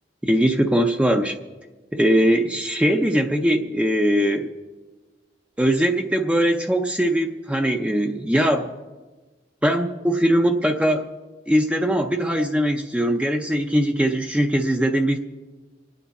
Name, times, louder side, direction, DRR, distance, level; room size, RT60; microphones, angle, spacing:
voice 1, 0.2-1.4 1.9-4.5 5.6-8.7 9.6-11.0 11.5-15.2, equal, 5° right, 4 dB, 0.5 m, -21 dB
26.0 x 9.3 x 4.2 m, 1.3 s
head